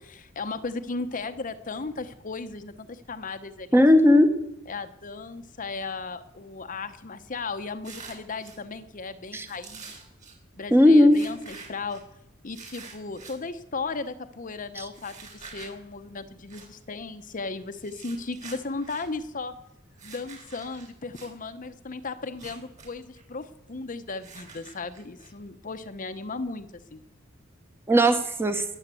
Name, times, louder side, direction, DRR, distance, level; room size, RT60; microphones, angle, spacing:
voice 1, 0.0-3.8 4.1-4.2 4.7-10.0 10.5-12.0 12.4-19.5 20.0-27.0, left 3 dB, 40° left, 9 dB, 0.8 m, -36 dB
voice 2, 3.7-4.3 9.3-9.5 10.7-11.2 14.8-14.9 27.9-28.6, left 1 dB, 10° right, 7 dB, 1.1 m, -17 dB
sound 1, 7.8-8.6 9.5-10.4 11.1-12.0 12.5-13.4 14.9-15.7 16.5-16.7 17.7-19.1 19.9-21.3 22.2-22.9 23.1-23.2 24.2-25.3, right 5 dB, 40° right, 3.8 m, -46 dB
21.0 x 7.3 x 8.3 m, 0.82 s
head